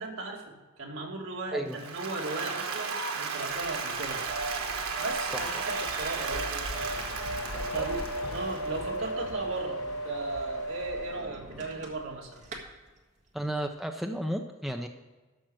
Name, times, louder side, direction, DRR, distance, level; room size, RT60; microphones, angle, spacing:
voice 1, 0.0-4.2 5.0-6.6 7.7-8.0 8.3-12.4, right 3 dB, 65° right, -1 dB, 2.2 m, -37 dB
Applause, 1.7-8.9, right 5 dB, 85° right, 1.4 m, -34 dB
sound 1, 3.6-12.7, left 2 dB, 70° left, 1.1 m, -43 dB
sound 2, 3.9-12.2 12.4-12.6, right 1 dB, 35° right, 1.6 m, -37 dB
voice 2, 7.5-7.9 13.3-14.9, equal, ahead, 4 dB, 0.5 m, -33 dB
12.0 x 6.5 x 6.2 m, 1.3 s
head